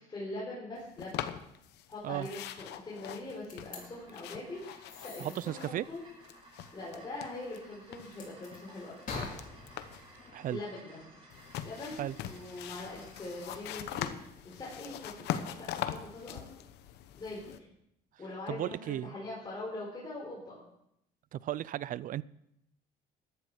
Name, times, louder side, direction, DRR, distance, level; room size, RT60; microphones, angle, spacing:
voice 1, 0.1-1.3 1.9-5.4 5.7-6.0 6.7-9.4 10.5-11.0 11.6-16.4 17.1-17.6 18.2-20.6, left 2 dB, 25° left, 4.4 m, -42 dB
sound 1, 1.0-1.9 2.2-6.0 6.2-7.6 7.9-10.1 11.3-17.6, left 11 dB, 85° left, 1.0 m, -42 dB
sound 2, 3.5-3.8 4.9-5.5 8.1-8.6 9.1-11.3, left 3 dB, 55° left, 4.9 m, -44 dB
sound 3, 3.5-13.6, right 2 dB, 30° right, 6.0 m, -57 dB
voice 2, 5.2-5.8 10.3-10.6 12.0-12.1 18.5-19.1 21.3-22.2, right 12 dB, 55° right, 0.4 m, -35 dB
14.5 x 11.5 x 4.9 m
cardioid pair, 110°, 17 cm